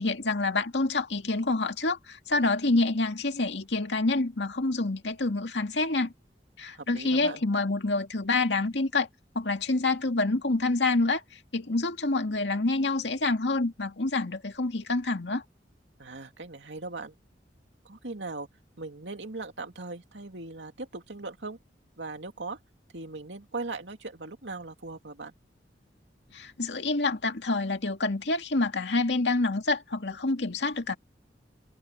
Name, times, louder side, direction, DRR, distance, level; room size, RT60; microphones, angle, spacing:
voice 1, 0.0-6.1 6.6-9.1 9.4-11.2 11.5-15.4 26.3-31.0, left 2 dB, 75° left, 2.2 m, -27 dB
voice 2, 6.8-7.4 16.0-17.1 17.8-18.5 18.8-21.6 22.0-22.6 22.9-25.3, right 3 dB, 85° right, 2.6 m, -39 dB
head